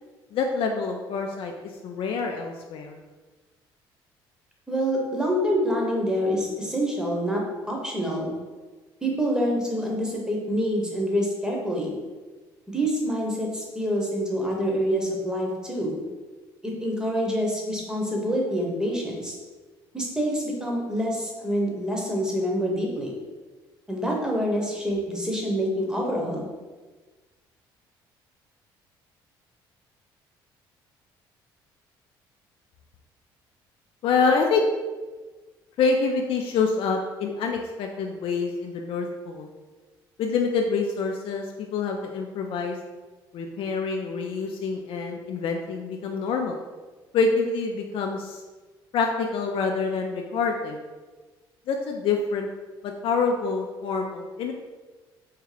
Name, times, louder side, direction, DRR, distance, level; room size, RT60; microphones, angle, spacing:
voice 1, 0.3-3.0 34.0-34.6 35.8-39.5 40.2-42.8 43.3-46.6 47.1-48.4 48.9-50.8 51.7-52.5 52.8-54.5, left 4 dB, 55° left, 2 dB, 0.4 m, -26 dB
voice 2, 4.7-8.3 9.0-12.0 12.7-16.0 16.6-19.4 19.9-23.2 23.9-26.5, equal, 5° right, -1 dB, 1.0 m, -26 dB
3.6 x 2.3 x 3.3 m, 1.3 s
hypercardioid pair, 60°, 11 cm